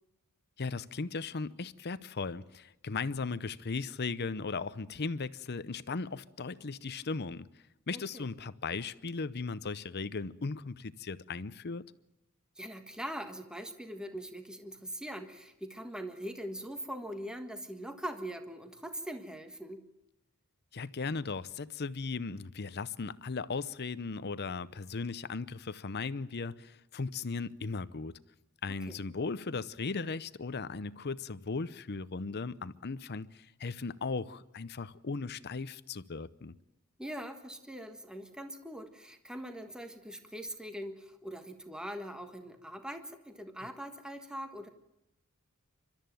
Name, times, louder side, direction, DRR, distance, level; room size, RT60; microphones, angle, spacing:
voice 1, 0.6-7.5 7.9-11.8 20.7-28.2 28.6-36.6, left 4 dB, 50° left, 0.7 m, -37 dB
voice 2, 7.9-8.2 12.6-19.8 28.9-29.0 37.0-44.7, equal, 5° right, 1.5 m, -42 dB
29.5 x 13.5 x 9.1 m
head